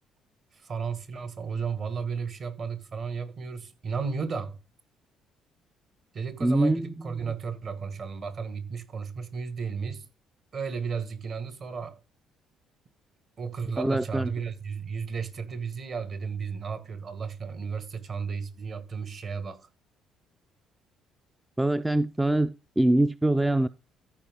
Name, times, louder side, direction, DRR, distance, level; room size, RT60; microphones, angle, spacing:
voice 1, 0.5-4.6 6.1-10.1 10.5-12.0 13.4-19.7, right 5 dB, 40° right, 1.6 m, -34 dB
voice 2, 6.4-7.3 13.8-14.3 21.6-23.7, right 1 dB, 10° right, 0.4 m, -24 dB
14.0 x 5.2 x 3.6 m
cardioid pair, 125°, 0 cm